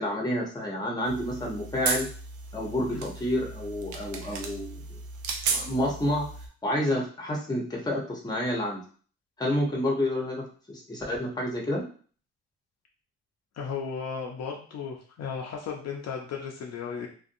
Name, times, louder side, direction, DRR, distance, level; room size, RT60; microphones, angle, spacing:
voice 1, 0.0-2.1 2.5-5.0 5.5-6.3 6.6-8.8 9.4-11.8, left 1 dB, 15° left, -1 dB, 0.8 m, -29 dB
sound 1, 1.0-6.5, right 4 dB, 75° right, 0.6 m, -35 dB
voice 2, 13.5-17.1, left 6 dB, 60° left, 0 dB, 0.6 m, -35 dB
2.5 x 2.2 x 2.6 m, 0.43 s
cardioid pair, 90°, 30 cm